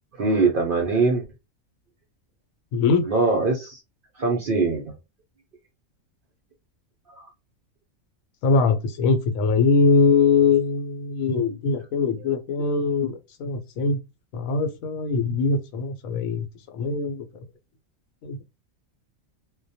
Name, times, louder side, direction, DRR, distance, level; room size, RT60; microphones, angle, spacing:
voice 1, 0.2-1.2 3.0-3.8 4.2-4.9 7.1-7.3 11.5-11.6 12.2-12.3, right 3 dB, 65° right, 0.5 m, -22 dB
voice 2, 2.7-3.0 8.4-14.0 14.3-16.5 16.7-17.3 18.2-18.4, left 4 dB, 85° left, 1.0 m, -22 dB
2.2 x 2.2 x 2.6 m
omnidirectional pair, 1.4 m